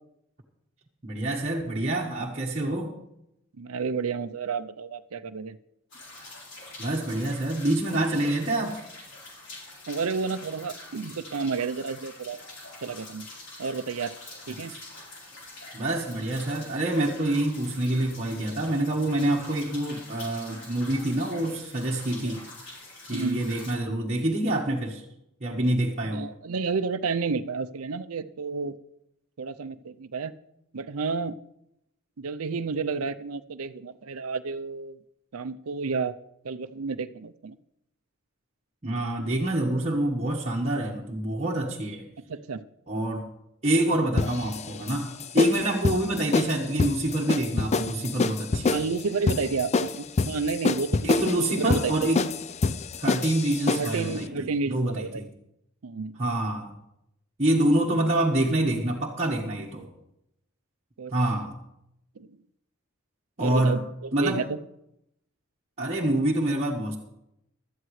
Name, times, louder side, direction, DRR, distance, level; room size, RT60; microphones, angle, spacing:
voice 1, 1.0-2.9 6.8-8.8 14.7-14.8 15.7-22.4 23.1-25.1 25.4-26.3 38.8-42.1 42.9-43.3 43.6-48.8 51.0-52.2 53.0-55.2 56.2-56.7 57.4-59.9 61.1-61.6 63.4-63.8 64.1-64.4 65.8-67.0, right 1 dB, 30° right, -4 dB, 1.3 m, -26 dB
voice 2, 3.6-5.6 9.9-12.4 12.8-13.3 13.6-14.1 14.5-14.7 23.1-23.4 26.0-28.8 29.4-30.3 30.7-31.4 32.2-35.0 35.3-36.1 36.4-37.6 42.3-42.6 48.7-51.9 53.8-55.2 55.8-56.2 61.0-61.1 62.2-62.3 63.4-63.8 64.2-64.6, right 4 dB, 80° right, 13 dB, 0.6 m, -31 dB
sound 1, 5.9-23.7, left 2 dB, 55° left, 4.3 m, -45 dB
sound 2, 44.2-54.1, left 4 dB, 30° left, 0.4 m, -27 dB
17.0 x 12.5 x 3.2 m, 0.80 s
head